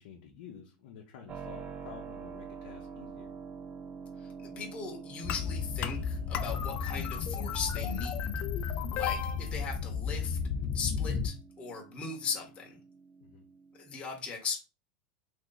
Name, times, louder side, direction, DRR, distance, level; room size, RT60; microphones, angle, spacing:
voice 1, 0.0-3.3 13.2-13.4, left 7 dB, 75° left, -1 dB, 0.8 m, -50 dB
Keyboard (musical), 1.3-14.0, right 6 dB, 30° right, 0.4 m, -48 dB
voice 2, 4.2-8.3 8.9-10.4 10.7-12.8 13.8-14.6, left 5 dB, 25° left, 0 dB, 1.0 m, -38 dB
sound 1, 5.2-11.3, left 6 dB, 45° left, 0.5 m, -33 dB
3.0 x 2.7 x 3.9 m, 0.32 s
supercardioid pair, 130°, 5 cm